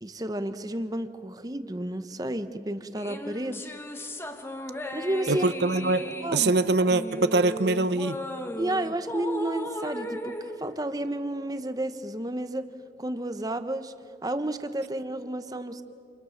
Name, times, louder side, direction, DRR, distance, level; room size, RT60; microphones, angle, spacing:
voice 1, 0.0-3.6 4.9-5.5 6.2-6.6 8.6-12.7 13.0-13.9 14.2-15.8, right 1 dB, 20° right, 10 dB, 1.0 m, -31 dB
sound 1, 3.0-11.6, equal, 15° left, 1.2 m, -37 dB
voice 2, 5.3-8.2, right 2 dB, 65° right, 12 dB, 0.8 m, -24 dB
29.0 x 27.5 x 6.6 m, 2.6 s
head